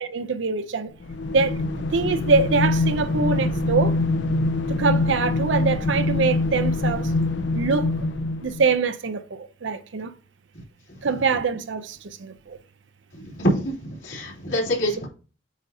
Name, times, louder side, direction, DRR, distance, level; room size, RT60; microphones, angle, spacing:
voice 1, 0.0-0.9 1.3-1.6 1.9-4.0 4.8-7.1 7.5-8.0 8.4-10.1 11.0-12.6, right 4 dB, 70° right, 0.6 m, -24 dB
sound 1, 1.0-8.7, left 2 dB, 60° left, 0.6 m, -24 dB
voice 2, 13.2-15.1, equal, 80° left, 3.1 m, -25 dB
8.1 x 2.8 x 5.3 m
head